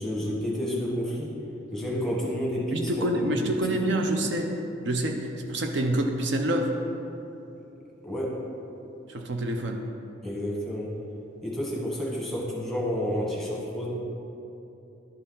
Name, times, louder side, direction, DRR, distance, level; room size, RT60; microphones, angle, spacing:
voice 1, 0.0-1.3 1.7-4.0 7.6-7.7 8.0-8.4 10.2-10.9 11.4-13.9, equal, ahead, -4 dB, 1.1 m, -30 dB
voice 2, 2.7-4.5 4.8-6.7 9.1-9.8, right 1 dB, 60° right, 3 dB, 0.5 m, -27 dB
11.0 x 4.1 x 3.8 m, 2.9 s
head